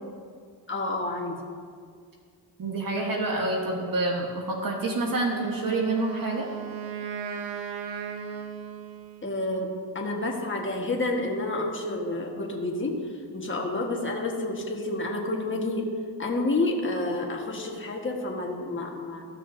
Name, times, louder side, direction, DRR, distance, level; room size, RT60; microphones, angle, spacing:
voice 1, 0.7-1.4 9.2-15.9 16.2-19.2, left 2 dB, 25° left, 1 dB, 1.5 m, -29 dB
voice 2, 2.6-6.5, right 2 dB, 50° right, 0 dB, 1.3 m, -27 dB
Wind instrument woodwind instrument, 5.2-9.4, right 7 dB, 90° right, 0.8 m, -36 dB
14.5 x 6.3 x 2.7 m, 2.1 s
cardioid pair, 80°, 44 cm